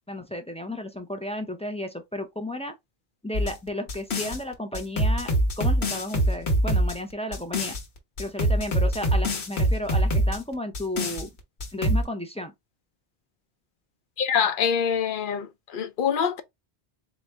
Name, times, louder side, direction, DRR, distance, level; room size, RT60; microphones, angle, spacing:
voice 1, 0.1-2.7 3.2-5.3 5.6-7.7 8.2-11.3 11.7-12.5, left 1 dB, 10° left, 0.3 m, -33 dB
sound 1, 3.3-4.4 4.7-7.8 8.2-10.4 10.7-11.2 11.6-12.0, right 1 dB, 90° left, 1.3 m, -24 dB
voice 2, 14.2-16.4, left 7 dB, 60° left, 0.7 m, -25 dB
4.0 x 2.6 x 3.3 m
omnidirectional pair, 1.1 m